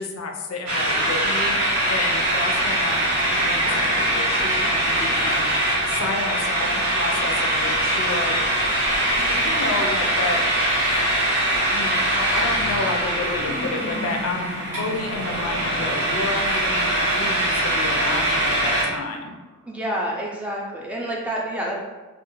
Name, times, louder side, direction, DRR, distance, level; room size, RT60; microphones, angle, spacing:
voice 1, 0.0-5.5 5.9-8.4 9.0-10.4 11.7-19.4, left 3 dB, 65° left, 2 dB, 0.4 m, -30 dB
sound 1, 0.7-18.8, right 1 dB, 90° right, 1.2 m, -22 dB
sound 2, 3.3-19.7, equal, 55° right, 0.7 m, -38 dB
voice 2, 19.7-21.8, right 1 dB, 5° right, -3 dB, 0.3 m, -28 dB
2.4 x 2.3 x 3.0 m, 1.2 s
head